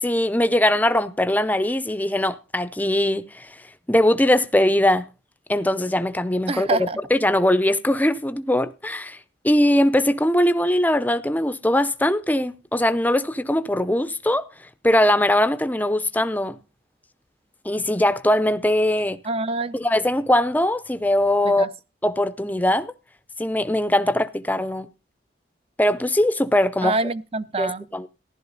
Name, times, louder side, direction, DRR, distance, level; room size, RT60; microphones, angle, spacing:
voice 1, 0.0-3.5 3.9-5.1 5.5-9.2 9.4-14.5 14.8-16.6 17.6-19.2 19.7-21.7 22.0-22.9 23.4-24.9 25.8-26.9 27.6-28.1, left 1 dB, 10° left, 0.6 m, -21 dB
voice 2, 6.5-7.0 19.2-19.8 21.5-21.7 26.8-27.9, right 2 dB, 30° right, 0.5 m, -26 dB
15.0 x 11.5 x 4.0 m
head